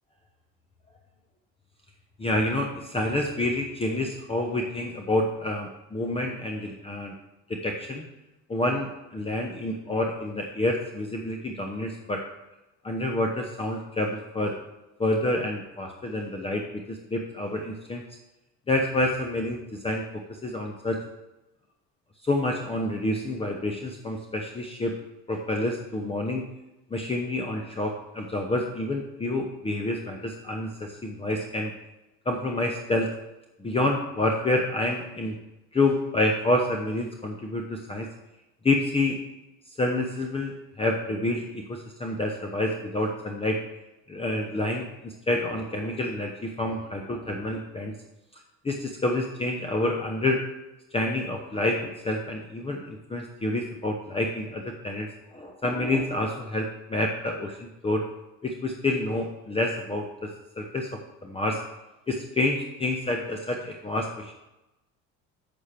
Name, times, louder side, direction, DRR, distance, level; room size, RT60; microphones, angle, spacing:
voice 1, 2.2-7.1 7.5-8.0 8.5-12.2 12.8-14.6 15.0-18.0 18.7-20.0 20.4-21.0 22.2-24.9 25.3-26.4 26.9-31.7 32.3-33.1 33.6-35.4 35.7-38.1 38.6-39.2 39.8-43.6 44.1-47.9 48.6-50.4 50.9-58.1 58.4-60.3 60.6-60.9 61.2-61.6 62.1-64.3, left 2 dB, 15° left, 2 dB, 0.9 m, -28 dB
6.9 x 6.3 x 5.8 m, 0.99 s
supercardioid pair, 105°, 33 cm